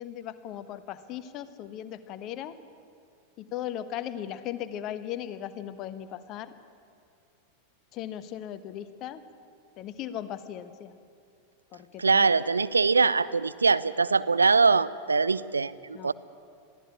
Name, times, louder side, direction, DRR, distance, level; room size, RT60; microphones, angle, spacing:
voice 1, 0.0-2.5 3.4-6.5 7.9-9.2 9.8-11.0 11.7-12.3 13.0-13.1 15.9-16.1, left 11 dB, 35° left, 12 dB, 1.2 m, -37 dB
voice 2, 12.0-16.1, right 4 dB, 75° right, 16 dB, 0.6 m, -23 dB
22.5 x 15.0 x 8.6 m, 2.4 s
figure-of-eight pair, 90°, 0 cm